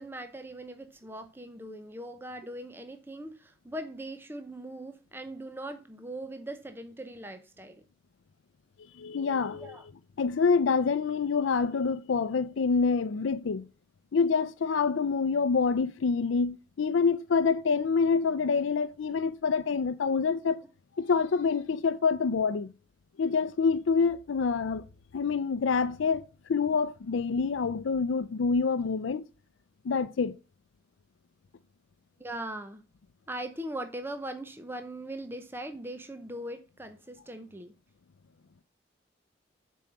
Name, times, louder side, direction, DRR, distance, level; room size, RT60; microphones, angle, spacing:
voice 1, 0.0-7.8 9.5-9.9 32.2-32.8 33.3-37.7, right 1 dB, 10° right, 0.6 m, -40 dB
voice 2, 8.9-9.8 10.2-13.7 14.1-20.6 21.0-22.7 23.2-24.8 25.1-26.2 26.5-29.3 29.8-30.3, left 5 dB, 90° left, 0.5 m, -26 dB
7.4 x 4.7 x 6.0 m
head